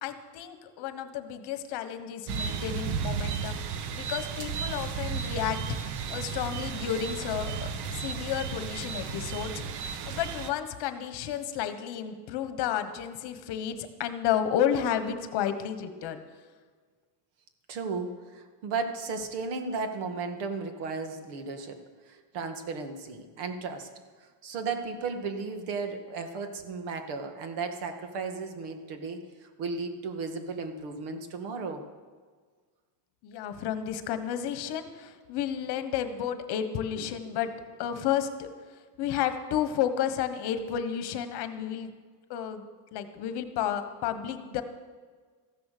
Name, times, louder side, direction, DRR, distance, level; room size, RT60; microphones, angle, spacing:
voice 1, 0.0-3.6 3.9-5.8 6.1-16.2 33.2-37.5 37.8-38.5 39.0-41.9 42.3-42.6 42.9-44.6, left 9 dB, 55° left, 9 dB, 1.3 m, -31 dB
sound 1, 2.3-10.5, right 6 dB, 55° right, 1.0 m, -34 dB
voice 2, 17.7-21.8 22.0-23.9 24.2-31.8 36.9-37.1, right 4 dB, 75° right, 6 dB, 1.9 m, -35 dB
14.5 x 10.5 x 6.7 m, 1.5 s
cardioid pair, 175°, 49 cm